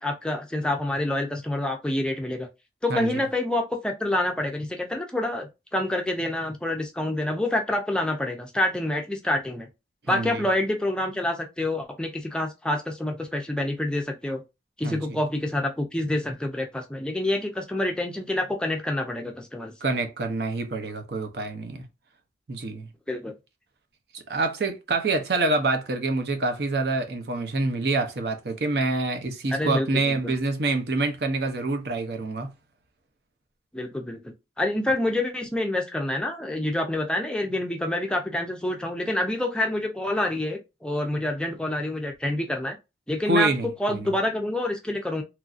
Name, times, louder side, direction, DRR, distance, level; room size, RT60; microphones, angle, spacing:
voice 1, 0.0-2.5 2.8-9.7 10.1-14.4 14.8-19.7 23.1-23.3 29.5-30.3 33.7-42.8 43.1-43.5 43.8-45.2, left 1 dB, 5° left, 0.4 m, -27 dB
voice 2, 2.9-3.2 10.1-10.4 14.8-15.0 19.8-21.8 22.5-22.9 24.1-32.5 43.3-44.1, right 2 dB, 65° right, 0.7 m, -26 dB
3.0 x 2.6 x 2.4 m
head